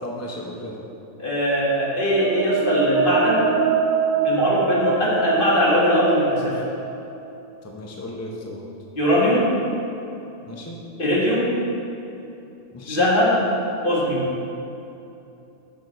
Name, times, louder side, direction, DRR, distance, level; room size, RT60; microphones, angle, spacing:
voice 1, 0.0-0.8 7.6-8.6 10.5-10.8 12.7-13.0, left 1 dB, 20° left, -1 dB, 0.4 m, -35 dB
voice 2, 1.2-3.4 4.2-6.6 9.0-9.5 11.0-11.5 12.9-13.3 13.8-14.3, equal, 40° left, -6 dB, 2.0 m, -20 dB
sound 1, 1.7-7.5, right 5 dB, 85° right, 0.4 m, -24 dB
6.6 x 6.4 x 5.4 m, 2.8 s
omnidirectional pair, 1.4 m